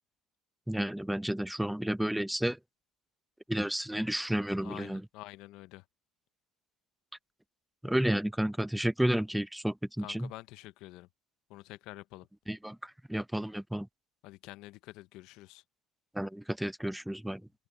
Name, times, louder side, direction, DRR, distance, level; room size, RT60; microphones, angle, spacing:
voice 1, 0.7-2.6 3.5-5.0 7.8-10.3 12.5-13.9 16.1-17.4, right 1 dB, 5° right, 0.7 m, -31 dB
voice 2, 4.6-5.8 10.0-11.1 11.5-12.3 14.2-15.6, left 18 dB, 65° left, 0.7 m, -48 dB
supercardioid pair, 95°, 0 cm